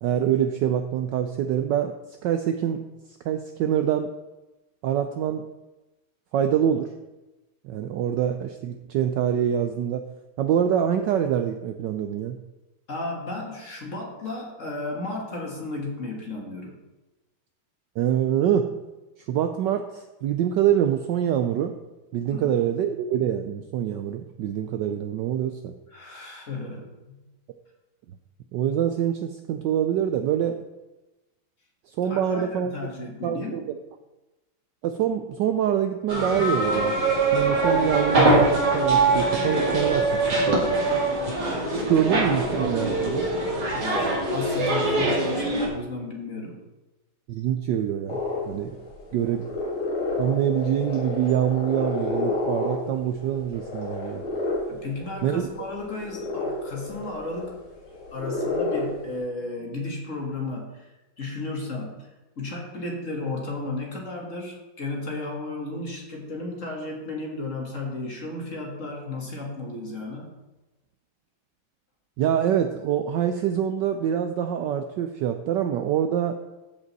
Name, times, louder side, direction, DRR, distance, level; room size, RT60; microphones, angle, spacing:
voice 1, 0.0-1.9 2.2-2.8 3.2-4.1 4.8-5.4 6.3-6.9 7.6-10.1 10.4-12.4 18.0-18.7 19.3-21.7 22.1-25.7 28.5-30.6 31.9-32.7 33.2-33.8 34.8-37.0 37.3-40.6 41.4-43.3 47.3-48.2 48.5-48.8 49.1-49.5 50.2-54.2 55.2-55.5 72.2-76.4, right 9 dB, 75° right, 7 dB, 1.0 m, -25 dB
voice 2, 12.9-16.8 22.3-22.5 25.9-27.2 32.1-33.6 43.7-46.6 54.7-57.5 58.1-60.9 61.2-62.1 62.4-70.3, left 2 dB, 40° left, 0 dB, 1.7 m, -34 dB
sound 1, 36.1-45.7, right 2 dB, 50° right, 2.8 m, -23 dB
sound 2, 48.1-59.2, left 2 dB, 80° left, 4.1 m, -31 dB
14.5 x 5.1 x 4.0 m, 1.1 s
omnidirectional pair, 2.3 m